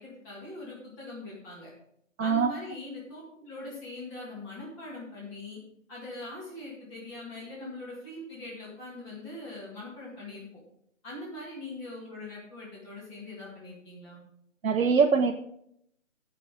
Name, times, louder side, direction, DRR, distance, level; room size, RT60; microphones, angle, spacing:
voice 1, 0.0-1.7 2.2-5.6 5.9-10.5 11.0-14.2, left 2 dB, 10° left, -6 dB, 2.0 m, -42 dB
voice 2, 14.6-15.3, right 5 dB, 85° right, 2 dB, 1.0 m, -22 dB
16.0 x 6.0 x 3.6 m, 0.72 s
hypercardioid pair, 170°, 40 cm